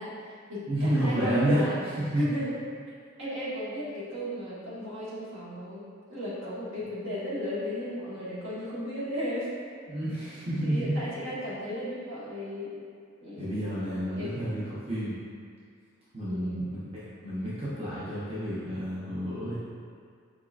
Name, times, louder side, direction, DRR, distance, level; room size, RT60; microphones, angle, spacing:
voice 1, 0.0-1.8 2.1-2.6 3.2-5.8 6.1-9.5 10.6-12.8 13.2-13.9 14.1-14.7 16.2-16.7, equal, 70° right, -9 dB, 1.4 m, -35 dB
voice 2, 0.7-1.6 2.1-2.4 9.9-10.9 13.4-15.2 16.1-19.5, right 1 dB, 30° right, -11 dB, 0.8 m, -30 dB
4.7 x 3.6 x 2.5 m, 2.1 s
head